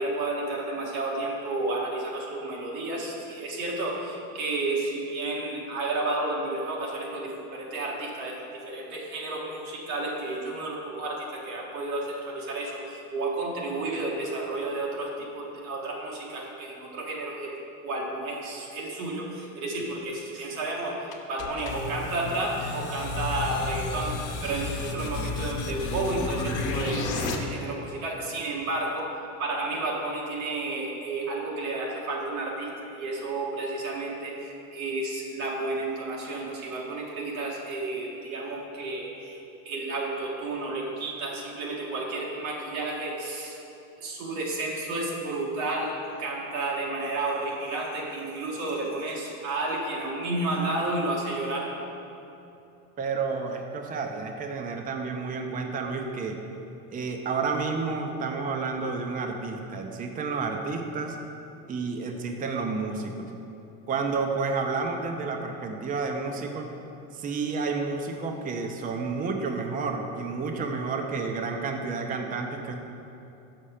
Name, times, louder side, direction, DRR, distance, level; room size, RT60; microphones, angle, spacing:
voice 1, 0.0-17.5 17.8-29.1 29.4-43.6 44.0-51.7, right 2 dB, 90° right, -2 dB, 1.7 m, -31 dB
sound 1, 21.1-27.4, left 3 dB, 50° left, 1.0 m, -32 dB
voice 2, 53.0-56.4 56.9-61.2 61.7-63.3 63.9-66.7 67.1-72.7, right 4 dB, 20° right, 3 dB, 0.6 m, -30 dB
6.5 x 5.8 x 4.9 m, 2.8 s
supercardioid pair, 105°, 41 cm